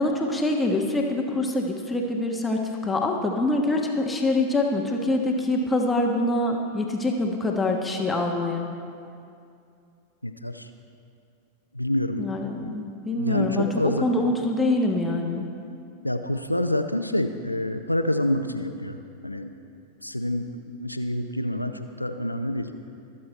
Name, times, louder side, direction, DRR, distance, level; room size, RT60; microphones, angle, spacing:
voice 1, 0.0-8.7 12.2-15.5, left 2 dB, 10° left, 1 dB, 1.2 m, -25 dB
voice 2, 10.2-10.7 11.7-12.3 12.6-12.8 13.2-14.1 16.0-19.6 20.0-22.7, left 1 dB, 90° left, 7 dB, 0.6 m, -27 dB
22.0 x 7.6 x 4.5 m, 2.5 s
figure-of-eight pair, 90°, 0 cm